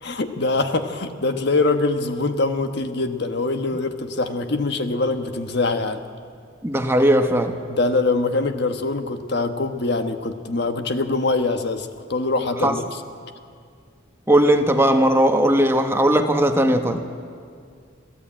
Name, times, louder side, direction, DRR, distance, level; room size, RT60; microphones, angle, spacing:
voice 1, 0.0-6.0 7.7-13.0, left 3 dB, 60° left, 7 dB, 1.3 m, -23 dB
voice 2, 6.6-7.5 12.6-12.8 14.3-17.0, right 1 dB, 15° right, 5 dB, 1.2 m, -18 dB
26.5 x 15.5 x 8.9 m, 2.2 s
head